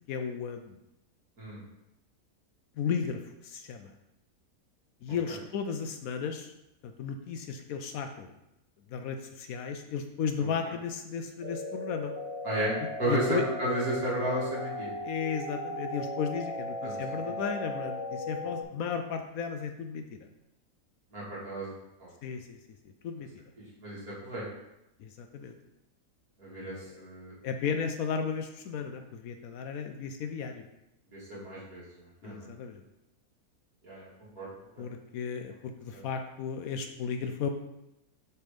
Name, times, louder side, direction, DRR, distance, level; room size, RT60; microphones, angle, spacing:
voice 1, 0.1-0.8 2.8-3.9 5.0-6.5 6.8-8.3 8.9-12.1 13.1-13.4 15.0-20.1 22.2-22.6 23.0-23.3 25.0-25.5 27.4-30.7 32.2-32.8 34.8-37.5, left 6 dB, 70° left, 6 dB, 1.0 m, -34 dB
voice 2, 10.4-10.7 12.4-14.9 16.8-16.9 17.2-17.3 21.1-21.7 22.0-22.1 23.8-24.4 26.4-27.3 31.1-32.5 33.8-34.1 34.4-34.5 34.8-34.9 35.9-36.0, right 1 dB, 65° right, -7 dB, 2.8 m, -33 dB
sound 1, 11.4-18.6, left 1 dB, 20° right, 0.9 m, -37 dB
6.8 x 3.5 x 5.0 m, 0.89 s
omnidirectional pair, 1.7 m